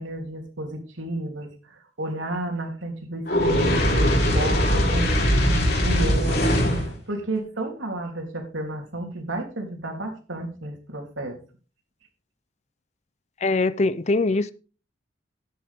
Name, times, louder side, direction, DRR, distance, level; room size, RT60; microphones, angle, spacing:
voice 1, 0.0-6.4 7.1-11.4, right 1 dB, 90° right, 3.3 m, -32 dB
Fire, 3.3-6.9, equal, 55° left, 4.1 m, -21 dB
voice 2, 13.4-14.5, left 3 dB, 35° left, 0.5 m, -22 dB
13.5 x 10.0 x 3.6 m
head